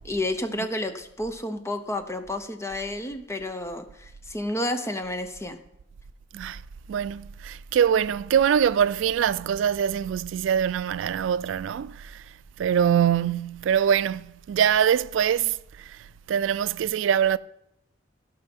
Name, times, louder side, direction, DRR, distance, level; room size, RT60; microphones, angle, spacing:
voice 1, 0.0-5.6, left 1 dB, 15° left, 0.8 m, -31 dB
voice 2, 6.9-12.2 12.6-16.0 16.3-17.4, right 8 dB, 90° right, 0.3 m, -23 dB
16.0 x 5.6 x 5.3 m
head